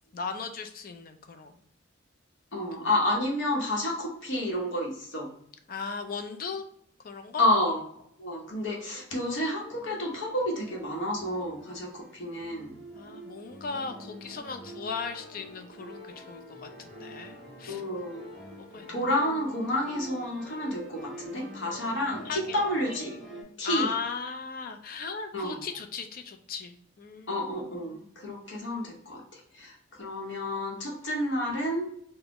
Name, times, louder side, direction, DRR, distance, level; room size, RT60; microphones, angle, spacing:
voice 1, 0.1-1.5 5.7-6.7 7.0-7.5 12.9-17.8 18.6-19.0 22.2-22.6 23.6-28.1, left 5 dB, 45° left, 7 dB, 0.4 m, -37 dB
voice 2, 2.5-5.3 7.4-7.8 8.2-12.7 17.7-18.2 18.9-23.2 23.6-23.9 25.3-25.6 27.3-31.9, left 1 dB, 70° left, -2 dB, 1.0 m, -30 dB
sound 1, 9.7-23.4, equal, 5° right, 0.8 m, -46 dB
4.1 x 2.1 x 2.9 m, 0.67 s
head